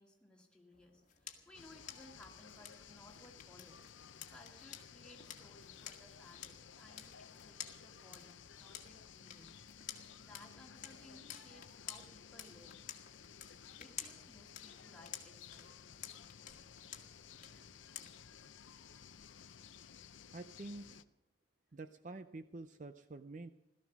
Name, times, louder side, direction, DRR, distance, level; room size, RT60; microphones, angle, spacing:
voice 1, 0.0-3.8 4.3-9.6 9.9-12.8 13.8-15.8, left 1 dB, 5° left, -1 dB, 2.2 m, -60 dB
sound 1, 0.7-18.4, left 9 dB, 40° left, 1.5 m, -53 dB
sound 2, 1.5-21.0, left 7 dB, 75° left, 0.6 m, -56 dB
voice 2, 20.3-21.0 21.7-23.5, right 2 dB, 40° right, 10 dB, 0.5 m, -48 dB
17.0 x 13.5 x 6.1 m, 0.84 s
head